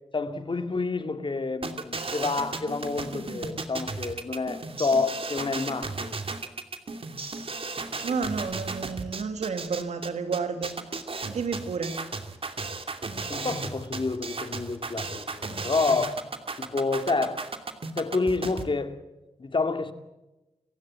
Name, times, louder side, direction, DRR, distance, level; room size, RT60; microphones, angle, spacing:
voice 1, 0.1-6.1 13.3-16.2 16.6-17.4 17.9-19.0 19.4-19.9, left 3 dB, 45° left, 2.4 m, -28 dB
sound 1, 1.6-18.6, right 3 dB, 55° right, 2.8 m, -35 dB
voice 2, 8.0-10.8 11.2-12.0, right 5 dB, 90° right, 2.7 m, -31 dB
29.0 x 16.0 x 7.6 m
cardioid pair, 60°, 11 cm